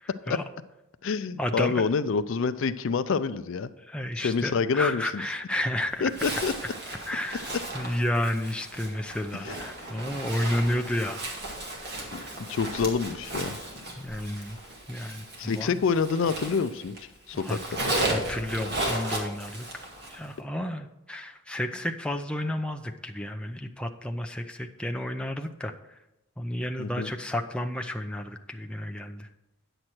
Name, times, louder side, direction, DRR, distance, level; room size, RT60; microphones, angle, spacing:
voice 1, 0.0-0.4 1.4-1.8 3.8-6.1 7.1-7.5 7.7-11.2 14.0-14.6 14.9-15.8 17.3-17.6 18.0-19.6 20.1-25.7 26.4-29.3, left 1 dB, 5° left, 4 dB, 0.5 m, -31 dB
voice 2, 1.0-3.7 4.2-5.2 6.0-6.5 9.4-9.6 12.1-12.2 12.5-13.6 15.4-17.8 26.8-27.1, left 5 dB, 60° left, 13 dB, 0.4 m, -27 dB
Zipper (clothing), 6.1-17.0 17.3-20.3, right 1 dB, 50° right, 2.0 m, -35 dB
9.8 x 7.9 x 4.4 m, 0.93 s
head